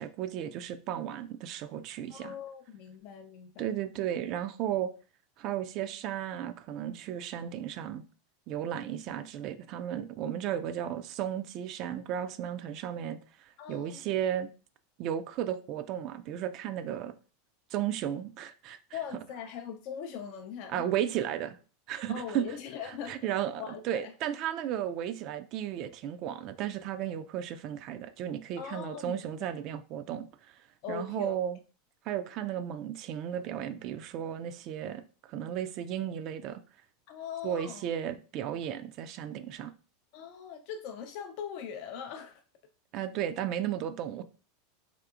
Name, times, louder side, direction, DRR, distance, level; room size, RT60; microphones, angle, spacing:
voice 1, 0.0-2.3 3.6-4.9 5.4-8.0 8.5-13.2 13.7-14.5 15.0-17.1 17.7-19.0 20.7-21.6 21.9-22.5 22.8-30.3 30.9-31.6 32.1-35.0 35.3-36.6 37.4-39.7 42.9-44.2, right 10 dB, 50° right, 0.3 m, -34 dB
voice 2, 2.1-3.7 13.6-14.0 18.9-20.9 22.1-24.1 28.6-29.5 30.8-31.4 37.1-37.9 40.1-42.4, left 7 dB, 55° left, 0.4 m, -41 dB
3.6 x 2.7 x 2.4 m
hypercardioid pair, 90°, 0 cm